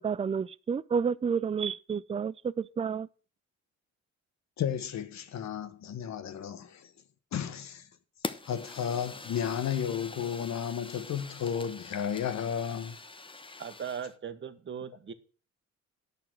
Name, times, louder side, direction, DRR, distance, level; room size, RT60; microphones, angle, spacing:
voice 1, 0.0-3.1, right 6 dB, 20° right, 0.4 m, -30 dB
voice 2, 4.6-6.9 7.3-7.9 8.5-13.0, left 8 dB, 65° left, 1.3 m, -33 dB
Fire, 8.2-14.1, left 3 dB, 15° left, 0.9 m, -44 dB
voice 3, 13.6-15.1, right 7 dB, 40° right, 1.3 m, -39 dB
10.5 x 6.9 x 6.2 m
cardioid pair, 90°, 30 cm